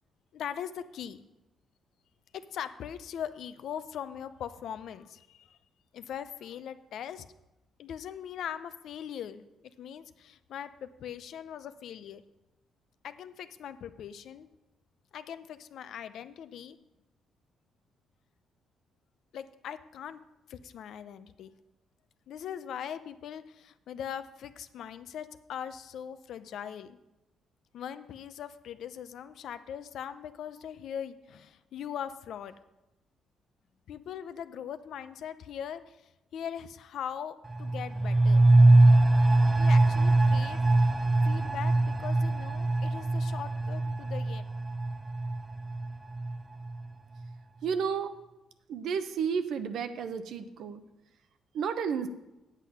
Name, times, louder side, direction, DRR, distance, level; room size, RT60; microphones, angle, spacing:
voice 1, 0.3-1.2 2.5-5.6 5.9-7.2 7.8-9.5 9.8-12.2 13.0-14.5 15.1-16.8 19.3-20.2 20.5-21.5 22.3-27.0 27.7-32.5 33.9-36.0 36.3-38.4 39.5-44.4, left 9 dB, 70° left, 12 dB, 0.6 m, -40 dB
sound 1, 37.4-46.9 47.2-47.3, right 2 dB, 15° right, 0.5 m, -23 dB
voice 2, 47.6-48.1 48.7-50.8 51.5-52.1, right 6 dB, 75° right, 10 dB, 0.8 m, -31 dB
8.3 x 8.2 x 5.6 m, 0.98 s
cardioid pair, 90°, 0 cm